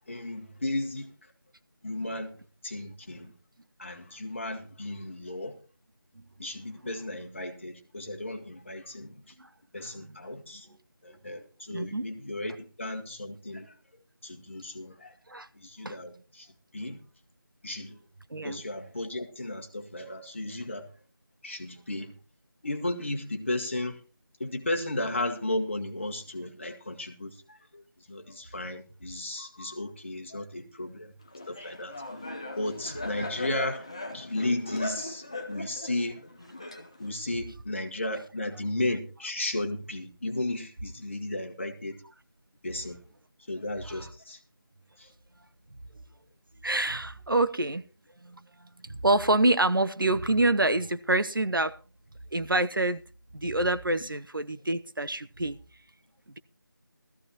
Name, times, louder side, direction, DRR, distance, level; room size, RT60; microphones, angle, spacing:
voice 1, 0.1-1.1 1.8-2.3 2.6-3.3 3.8-5.6 6.4-9.2 9.7-10.7 11.0-13.7 14.2-15.1 15.5-16.5 16.7-17.0 17.6-18.0 18.4-20.9 21.4-22.1 22.6-24.0 24.4-27.8 28.1-31.1 31.5-31.9 32.6-36.2 37.0-42.0 42.6-43.0 43.5-44.4 45.0-45.1, left 1 dB, 35° left, 1.4 m, -34 dB
voice 2, 11.7-12.0 15.3-15.5 15.8-16.0 18.3-18.6 43.9-44.1 46.6-47.8 48.2-51.8 52.3-53.0 53.3-55.6, right 2 dB, 70° right, 0.8 m, -27 dB
Laughter, 31.3-37.2, left 1 dB, 15° left, 0.6 m, -39 dB
17.0 x 14.0 x 2.9 m
figure-of-eight pair, 170°, 12 cm